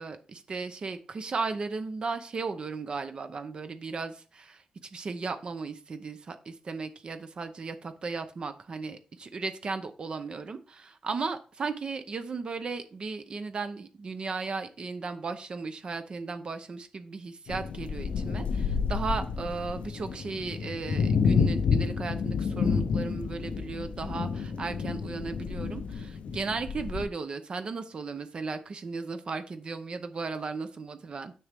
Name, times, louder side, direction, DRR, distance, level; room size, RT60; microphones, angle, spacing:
voice 1, 0.0-4.6 4.9-31.3, right 4 dB, 50° right, 9 dB, 0.6 m, -36 dB
sound 1, 17.5-27.1, left 5 dB, 80° left, 0.5 m, -29 dB
6.9 x 6.0 x 3.5 m, 0.37 s
wide cardioid pair, 110°, 2 cm